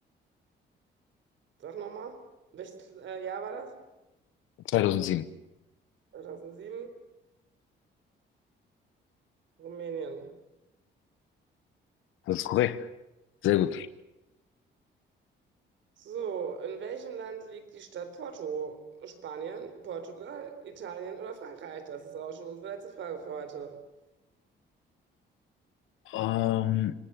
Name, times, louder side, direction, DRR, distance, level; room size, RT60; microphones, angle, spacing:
voice 1, 1.6-2.2 2.5-3.7 6.1-6.9 9.6-10.3 16.0-23.8, right 6 dB, 70° right, 4.2 m, -39 dB
voice 2, 4.7-5.3 12.3-12.9 13.4-13.9 26.1-26.9, left 13 dB, 90° left, 1.0 m, -26 dB
26.5 x 19.5 x 8.2 m
cardioid pair, 90°, 20 cm